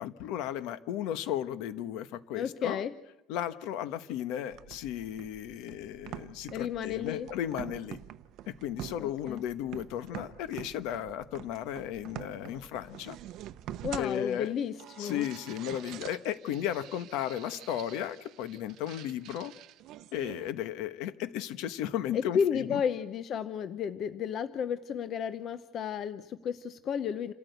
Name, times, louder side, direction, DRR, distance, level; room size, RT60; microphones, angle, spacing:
voice 1, 0.0-2.8 3.3-8.0 8.5-13.2 14.0-14.5 15.0-19.5 20.1-22.8, left 11 dB, 65° left, 12 dB, 1.2 m, -35 dB
voice 2, 2.3-2.9 6.5-7.3 9.0-9.4 13.8-15.3 22.1-27.3, left 7 dB, 35° left, 11 dB, 0.8 m, -32 dB
sound 1, 4.5-20.5, right 12 dB, 50° right, 0.7 m, -46 dB
28.5 x 13.5 x 8.1 m, 0.86 s
cardioid pair, 165°, 0 cm